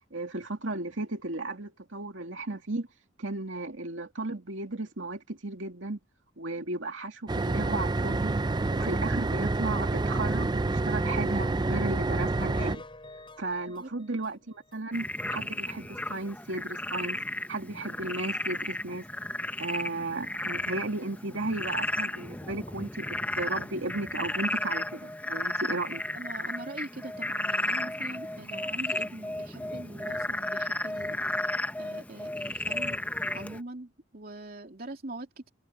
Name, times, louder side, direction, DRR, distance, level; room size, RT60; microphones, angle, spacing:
voice 1, 0.1-2.9 3.2-6.0 6.4-8.3 8.7-12.8 13.4-17.2 17.5-19.0 19.6-26.0, right 2 dB, 80° right, 2.4 m, -35 dB
sound 1, 7.3-12.8, right 2 dB, 20° right, 0.4 m, -28 dB
sound 2, 12.1-14.8 15.2-15.3 15.7-15.8 16.2-16.3, left 1 dB, 25° left, 7.4 m, -46 dB
Frog, 14.9-33.6, left 1 dB, 10° left, 0.9 m, -34 dB
voice 2, 26.1-31.2 31.8-33.0 33.3-35.5, right 2 dB, 50° right, 3.0 m, -43 dB
head